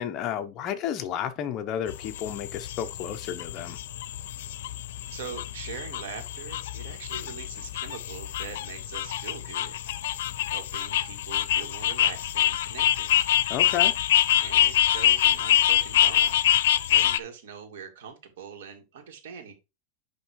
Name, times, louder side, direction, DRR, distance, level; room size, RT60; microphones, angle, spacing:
voice 1, 0.0-3.8 13.5-13.9, left 9 dB, 30° left, 0.9 m, -32 dB
sound 1, 1.9-17.2, left 12 dB, 80° left, 0.6 m, -25 dB
voice 2, 5.1-9.7 10.5-13.1 14.4-16.4 16.9-19.5, right 7 dB, 85° right, 2.8 m, -42 dB
11.0 x 3.6 x 4.7 m
supercardioid pair, 165°, 0 cm